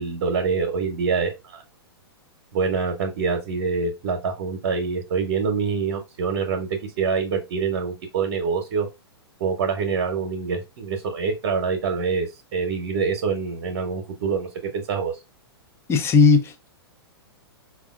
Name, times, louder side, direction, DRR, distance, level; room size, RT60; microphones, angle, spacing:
voice 1, 0.0-1.6 2.5-8.9 9.4-15.1, right 5 dB, 55° right, 0.9 m, -25 dB
voice 2, 15.9-16.7, left 5 dB, 20° left, 0.6 m, -17 dB
4.9 x 2.3 x 2.4 m
hypercardioid pair, 120°, 13 cm